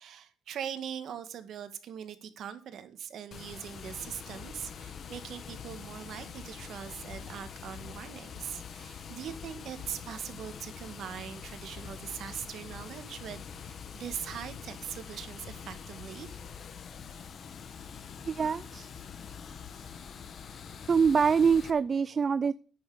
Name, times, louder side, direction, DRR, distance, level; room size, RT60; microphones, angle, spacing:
voice 1, 0.0-16.4 19.7-20.1, right 9 dB, 70° right, 10 dB, 1.6 m, -41 dB
Water, 3.3-21.7, left 7 dB, 55° left, 1.3 m, -45 dB
voice 2, 18.3-18.9 20.9-22.5, right 6 dB, 40° right, 16 dB, 0.4 m, -25 dB
10.5 x 6.1 x 8.5 m, 0.39 s
cardioid pair, 90°, 0 cm